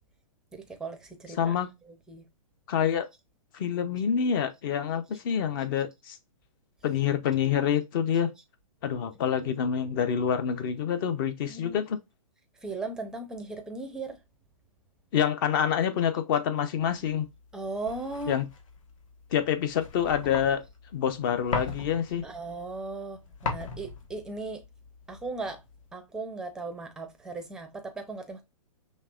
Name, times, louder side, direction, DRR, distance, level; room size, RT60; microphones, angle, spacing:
voice 1, 0.5-1.5 2.1-2.2 11.5-11.8 12.6-14.2 17.5-18.4 22.2-24.6 25.1-25.6 25.9-28.4, right 3 dB, 5° right, 0.5 m, -37 dB
voice 2, 1.4-1.7 2.7-3.1 3.5-6.2 6.8-8.3 8.8-12.0 15.1-17.3 18.3-18.5 19.3-20.6 20.9-22.2, left 8 dB, 35° left, 0.7 m, -27 dB
sound 1, 17.0-25.9, left 4 dB, 60° left, 1.2 m, -39 dB
5.2 x 3.2 x 2.4 m
hypercardioid pair, 150°, 19 cm